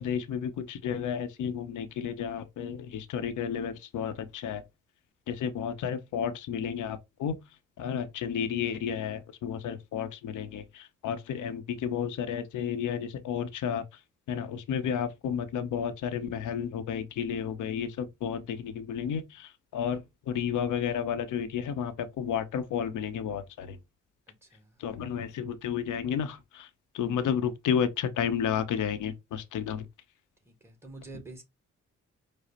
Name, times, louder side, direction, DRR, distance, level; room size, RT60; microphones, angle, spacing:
voice 1, 0.0-4.6 5.3-7.4 7.8-14.0 14.3-23.8 24.8-29.9, left 8 dB, 75° left, 0.7 m, -32 dB
voice 2, 24.3-24.8 30.4-31.4, right 3 dB, 10° right, 1.8 m, -47 dB
5.1 x 2.0 x 3.9 m
cardioid pair, 65°, 31 cm